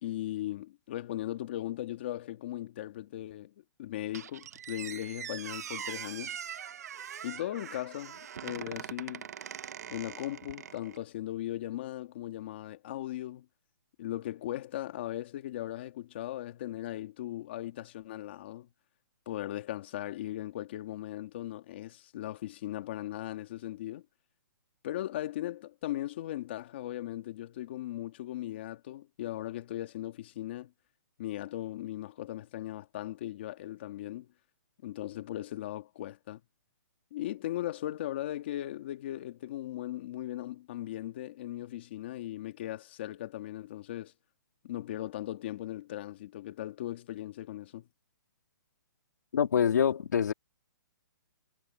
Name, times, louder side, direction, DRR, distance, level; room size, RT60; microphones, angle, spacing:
voice 1, 0.0-3.5 3.8-6.4 7.2-9.3 9.9-13.5 14.0-18.7 19.3-24.0 24.8-30.7 31.2-34.3 34.8-36.4 37.1-44.1 44.6-47.8, left 13 dB, 30° left, 2.1 m, -38 dB
Squeak, 4.1-11.0, right 8 dB, 50° right, 1.3 m, -42 dB
voice 2, 49.3-50.3, left 8 dB, 55° left, 2.5 m, -25 dB
hypercardioid pair, 175°, 11 cm